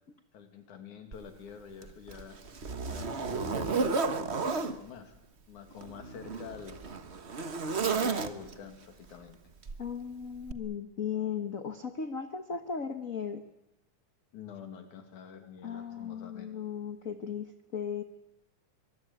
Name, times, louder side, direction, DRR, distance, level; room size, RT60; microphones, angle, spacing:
voice 1, 0.3-2.4 2.9-5.2 5.5-6.8 7.7-9.4 14.3-16.5, left 7 dB, 85° left, 6 dB, 3.9 m, -47 dB
Zipper (clothing), 1.1-1.2 1.8-4.8 5.7-8.7 9.7-9.9 10.5-10.6, right 4 dB, 80° right, 0.6 m, -32 dB
voice 2, 9.8-13.4 15.6-18.0, left 7 dB, 45° left, 8 dB, 1.0 m, -36 dB
23.5 x 22.5 x 9.2 m, 0.84 s
omnidirectional pair, 3.4 m